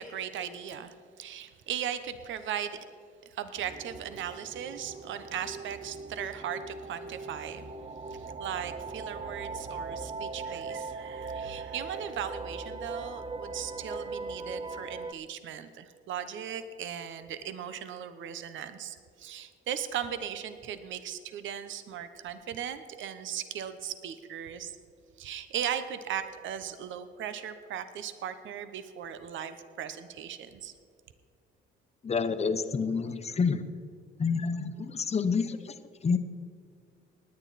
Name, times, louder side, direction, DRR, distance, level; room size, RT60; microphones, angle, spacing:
voice 1, 0.0-2.8 3.3-7.7 8.1-24.8 25.2-30.7, right 9 dB, 75° right, 11 dB, 0.9 m, -38 dB
sound 1, 3.6-15.1, right 3 dB, 25° right, 0.6 m, -40 dB
voice 2, 32.0-33.6 34.2-35.7 36.0-36.2, left 5 dB, 30° left, 9 dB, 0.9 m, -28 dB
19.5 x 9.6 x 4.1 m, 2.2 s
cardioid pair, 90°, 20 cm